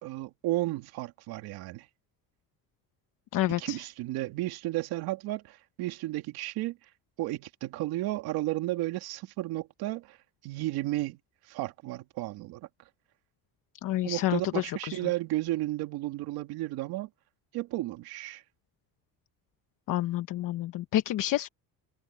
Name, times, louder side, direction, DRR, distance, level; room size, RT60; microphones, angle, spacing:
voice 1, 0.0-1.9 3.5-6.9 7.2-10.2 10.4-11.2 11.4-12.7 14.0-17.1 17.5-18.4, right 17 dB, 80° right, 2.6 m, -33 dB
voice 2, 3.3-3.8 13.8-15.0 19.9-21.5, left 14 dB, 60° left, 1.1 m, -29 dB
cardioid pair, 115°, 37 cm